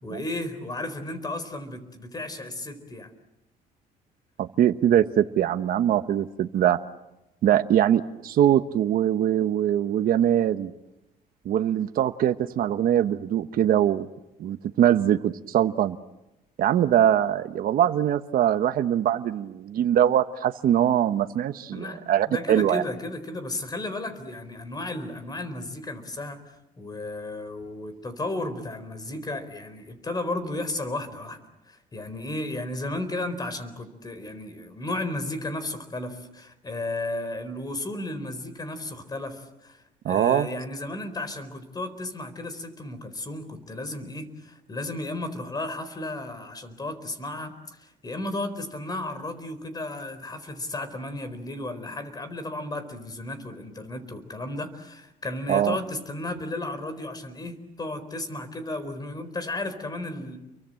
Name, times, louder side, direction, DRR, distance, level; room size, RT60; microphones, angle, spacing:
voice 1, 0.0-3.1 21.7-31.4 31.7-60.4, left 2 dB, 25° left, 12 dB, 4.3 m, -34 dB
voice 2, 4.4-6.8 7.4-10.7 11.4-14.1 14.4-16.0 16.6-22.8 40.0-40.5 55.5-55.8, right 10 dB, 60° right, 9 dB, 1.1 m, -22 dB
30.0 x 23.5 x 7.7 m, 0.93 s
cardioid pair, 110°, 17 cm